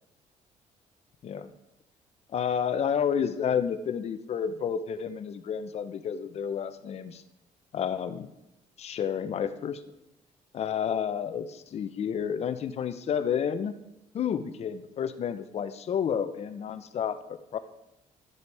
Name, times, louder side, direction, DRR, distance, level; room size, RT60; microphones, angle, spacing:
voice 1, 2.3-7.2 7.7-8.3 8.8-9.8 10.5-13.8 14.1-17.6, left 8 dB, 50° left, 11 dB, 0.8 m, -30 dB
12.0 x 8.1 x 4.8 m, 0.91 s
cardioid pair, 120°, 14 cm